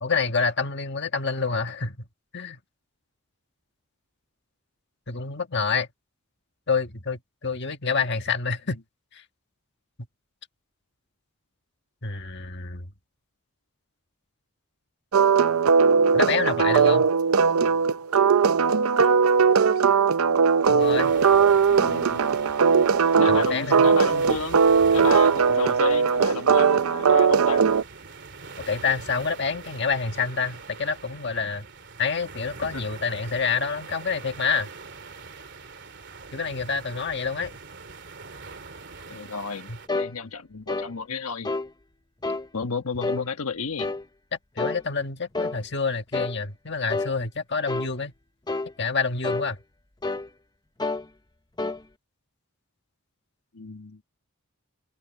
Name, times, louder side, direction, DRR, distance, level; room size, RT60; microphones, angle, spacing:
voice 1, 0.0-2.0 2.3-2.6 5.1-5.9 6.7-8.8 9.1-9.2 12.0-12.9 16.1-17.1 20.7-21.1 23.3-23.9 28.7-31.7 32.0-34.7 36.3-37.5 39.7-39.8 44.6-48.1 48.8-49.6, left 5 dB, 50° left, 1.7 m, -27 dB
sound 1, 15.1-27.8, right 6 dB, 75° right, 0.5 m, -19 dB
sound 2, 20.8-39.9, right 4 dB, 50° right, 2.9 m, -43 dB
voice 2, 21.6-22.2 23.2-24.6 24.9-27.6 32.6-32.8 39.1-41.5 42.5-43.9 53.5-54.0, left 4 dB, 80° left, 1.3 m, -32 dB
sound 3, 39.9-40.1 40.7-40.9 41.4-41.7 42.2-42.5 43.0-43.2 43.8-44.0 44.6-44.8 45.3-45.6 46.1-46.4 46.9-47.1 47.7-47.9 48.5-48.7 49.2-49.5 50.0-50.3 50.8-51.0 51.6-51.8, left 3 dB, 20° left, 0.7 m, -28 dB
open air
head